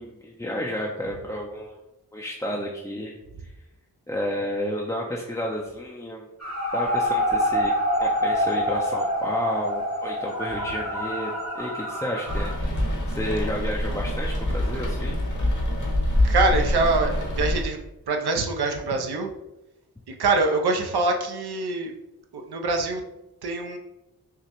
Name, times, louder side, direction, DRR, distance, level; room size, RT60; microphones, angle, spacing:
voice 1, 0.0-1.7 2.1-3.1 4.1-6.3 6.7-7.7 8.0-15.2, equal, 10° left, -2 dB, 0.3 m, -31 dB
sound 1, 6.4-12.5, equal, 40° right, 1.0 m, -26 dB
Rain, 12.3-17.6, left 1 dB, 50° left, 0.9 m, -25 dB
voice 2, 16.2-17.8 18.1-19.3 20.2-21.9 22.3-23.0 23.4-23.8, right 3 dB, 85° right, 3 dB, 0.6 m, -24 dB
5.6 x 2.1 x 2.9 m, 0.97 s
wide cardioid pair, 85°, 38 cm